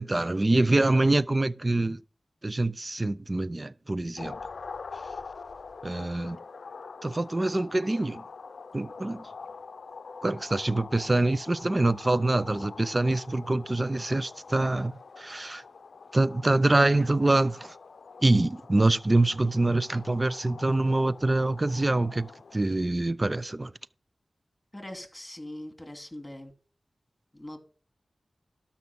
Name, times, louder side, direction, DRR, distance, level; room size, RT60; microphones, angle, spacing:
voice 1, 0.0-2.0 2.4-4.4 5.8-6.4 7.0-8.2 8.7-9.3 10.2-15.6 16.1-17.7 18.2-23.7, right 2 dB, 35° right, 0.6 m, -25 dB
sound 1, 4.2-22.6, left 4 dB, 85° left, 0.5 m, -45 dB
voice 2, 24.7-26.5 27.3-27.6, left 1 dB, 15° left, 2.7 m, -41 dB
12.5 x 5.8 x 5.4 m
cardioid pair, 50°, 0 cm